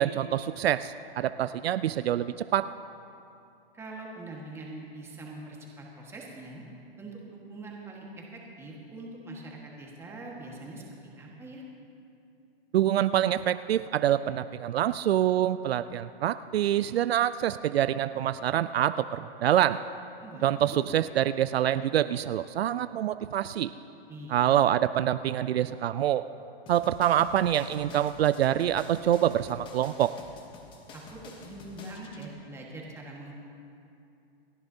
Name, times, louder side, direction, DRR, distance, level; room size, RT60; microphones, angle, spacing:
voice 1, 0.0-2.7 12.7-19.8 20.4-23.7 24.3-26.2 26.7-30.1, right 11 dB, 75° right, 13 dB, 0.5 m, -26 dB
voice 2, 3.7-6.6 7.0-11.6 20.2-20.8 24.1-24.6 30.9-33.3, right 2 dB, 10° right, -2 dB, 1.5 m, -43 dB
sound 1, 26.7-32.3, left 3 dB, 15° left, 1.0 m, -49 dB
29.0 x 10.5 x 2.8 m, 2.7 s
hypercardioid pair, 150°, 31 cm